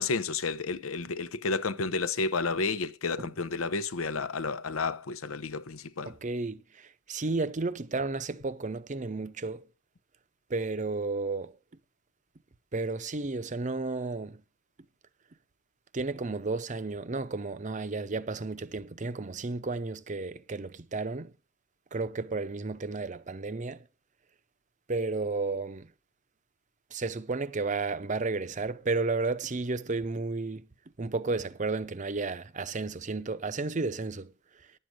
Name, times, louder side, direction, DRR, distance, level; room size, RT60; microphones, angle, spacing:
voice 1, 0.0-6.1, left 4 dB, 85° left, 0.8 m, -31 dB
voice 2, 6.1-9.6 10.5-11.6 12.7-14.4 15.9-21.3 21.9-23.8 24.9-25.9 26.9-30.7 31.0-34.3, right 3 dB, 35° right, 0.7 m, -32 dB
11.0 x 7.6 x 6.5 m
head